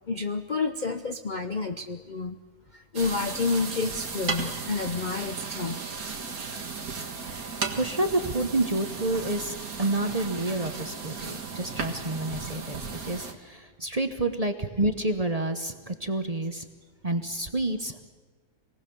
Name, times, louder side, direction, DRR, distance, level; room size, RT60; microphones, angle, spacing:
voice 1, 0.1-2.4 2.7-5.8, left 4 dB, 45° left, 8 dB, 0.6 m, -29 dB
sound 1, 2.9-13.3, right 5 dB, 60° right, 2.2 m, -35 dB
voice 2, 7.3-16.7 17.0-18.1, right 2 dB, 30° right, 7 dB, 0.9 m, -29 dB
25.0 x 19.0 x 7.0 m, 1.4 s
omnidirectional pair, 1.7 m